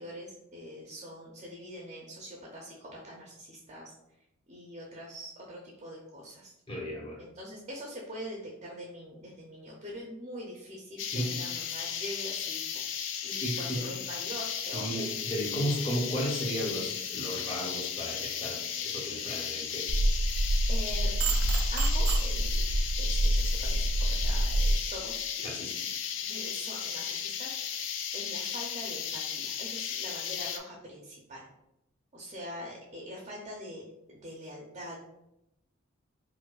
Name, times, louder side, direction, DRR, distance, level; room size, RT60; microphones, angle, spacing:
voice 1, 0.0-3.9 4.5-6.5 7.2-12.7 13.2-14.9 20.7-21.1 21.7-22.7 23.0-25.6 26.2-27.6 28.1-31.4 32.1-33.8 34.1-35.0, equal, 30° right, -2 dB, 0.5 m, -43 dB
voice 2, 6.7-7.2 11.1-11.4 13.2-13.9 14.7-19.9 25.4-25.7, equal, 25° left, -2 dB, 0.7 m, -34 dB
sound 1, 11.0-30.6, left 8 dB, 60° left, 0.3 m, -35 dB
sound 2, 19.9-24.7, right 1 dB, 85° right, 0.4 m, -27 dB
4.5 x 2.2 x 2.3 m, 0.84 s
head